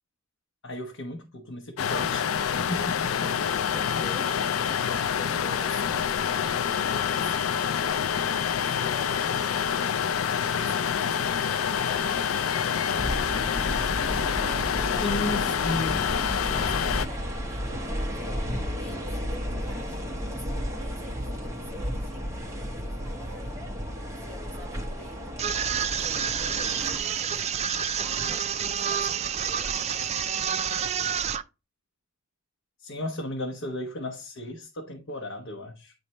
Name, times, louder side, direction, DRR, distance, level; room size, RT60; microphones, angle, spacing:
voice 1, 0.6-2.3 2.7-3.3 15.0-16.1 32.8-35.9, left 1 dB, 65° left, 1.0 m, -34 dB
sound 1, 1.8-17.1, left 8 dB, 85° left, 0.4 m, -27 dB
voice 2, 3.7-7.9 8.6-10.1 10.4-13.1 14.3-15.4 16.1-23.6 24.1-25.3 25.8-30.6, right 2 dB, 10° left, 1.7 m, -48 dB
sound 2, 12.9-27.0, equal, 15° right, 1.0 m, -33 dB
sound 3, 25.4-31.4, right 8 dB, 30° right, 0.4 m, -28 dB
9.4 x 3.2 x 4.2 m
head